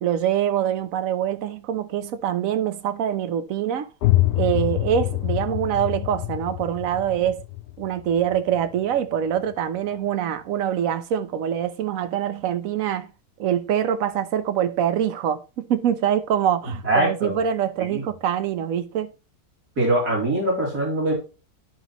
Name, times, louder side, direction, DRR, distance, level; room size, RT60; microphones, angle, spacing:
voice 1, 0.0-3.9 4.3-7.5 7.8-13.1 13.4-19.1, right 9 dB, 65° right, 1.1 m, -24 dB
sound 1, 4.0-9.6, left 17 dB, 80° left, 1.1 m, -26 dB
voice 2, 16.8-17.4 17.9-18.0 19.8-21.1, right 1 dB, 90° right, 3.7 m, -22 dB
12.0 x 5.5 x 3.0 m
omnidirectional pair, 1.6 m